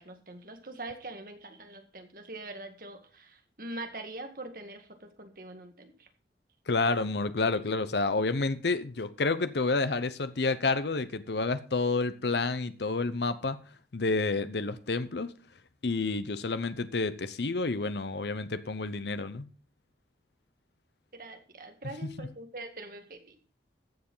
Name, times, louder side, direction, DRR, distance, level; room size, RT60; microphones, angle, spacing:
voice 1, 0.0-6.1 21.1-23.4, right 2 dB, 50° right, 1.9 m, -43 dB
voice 2, 6.7-13.6 13.9-15.3 15.8-19.5 22.0-22.1, left 3 dB, 75° left, 0.8 m, -29 dB
14.0 x 7.1 x 5.5 m
head